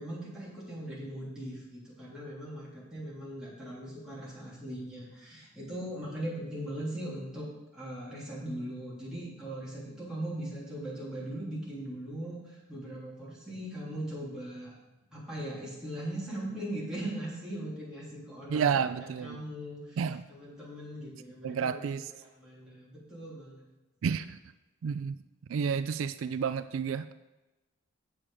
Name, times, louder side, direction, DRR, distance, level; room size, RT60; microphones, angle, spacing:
voice 1, 0.0-7.5 7.7-14.7 15.1-18.7 19.2-20.0 20.3-21.9 22.4-23.6, right 1 dB, 5° right, -8 dB, 3.3 m, -39 dB
voice 2, 18.5-19.4 20.0-20.2 21.4-22.1 24.0-24.4 24.8-25.2 25.5-27.1, right 6 dB, 75° right, 12 dB, 0.3 m, -30 dB
8.6 x 7.4 x 4.9 m, 1.1 s
head